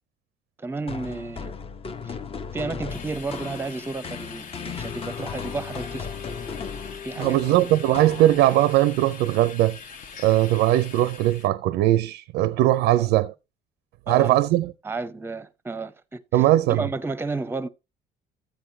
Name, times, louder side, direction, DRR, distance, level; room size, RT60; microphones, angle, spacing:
voice 1, 0.6-1.5 2.0-2.2 2.5-6.1 7.0-7.4 12.9-13.1 14.1-14.4 14.8-17.7, right 3 dB, 15° right, 0.6 m, -32 dB
sound 1, 0.9-8.7, left 5 dB, 35° left, 0.7 m, -36 dB
sound 2, 2.9-11.5, left 6 dB, 50° left, 1.0 m, -43 dB
Wind instrument woodwind instrument, 4.8-8.8, left 8 dB, 85° left, 2.8 m, -42 dB
voice 2, 7.2-9.8 10.2-13.3 14.1-14.7 16.3-16.9, right 14 dB, 90° right, 0.5 m, -20 dB
13.0 x 7.8 x 2.7 m
cardioid pair, 110°, 17 cm